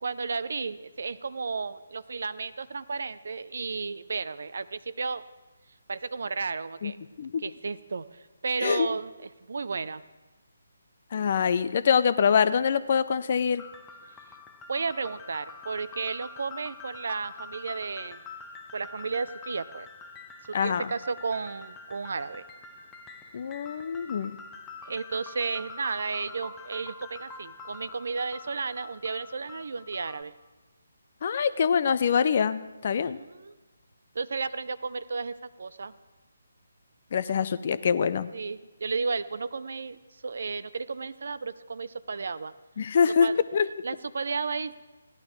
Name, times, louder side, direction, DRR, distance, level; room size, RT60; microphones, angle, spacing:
voice 1, 0.0-5.2 5.9-7.0 7.4-10.0 14.7-18.2 18.7-19.9 20.6-22.4 24.9-30.3 33.0-33.5 34.1-35.9 38.3-40.0 40.2-42.5 43.2-43.4 43.8-44.7, right 4 dB, 55° right, 16 dB, 0.5 m, -33 dB
voice 2, 11.1-13.6 20.5-20.9 23.3-24.4 31.2-33.2 37.1-38.3 42.8-43.7, left 6 dB, 40° left, 15 dB, 0.5 m, -24 dB
sound 1, 13.6-30.2, left 4 dB, 10° left, 0.8 m, -46 dB
15.5 x 10.5 x 4.7 m, 1.2 s
figure-of-eight pair, 145°, 0 cm